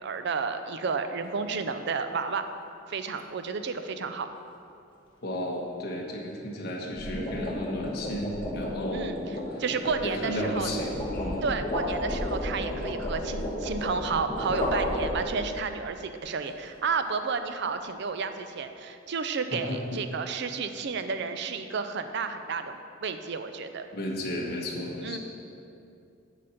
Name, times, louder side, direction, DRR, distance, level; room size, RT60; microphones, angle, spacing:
voice 1, 0.0-2.4 2.9-4.3 8.9-9.2 9.6-10.7 11.4-23.9 25.0-25.2, right 5 dB, 60° right, 8 dB, 0.5 m, -31 dB
sound 1, 1.2-1.5 6.7-15.6, left 1 dB, 25° left, 1.2 m, -32 dB
voice 2, 5.2-9.2 9.5-9.6 10.0-11.5 19.5-20.0 23.9-25.2, equal, 55° left, -2 dB, 1.2 m, -33 dB
8.4 x 4.2 x 7.0 m, 2.6 s
head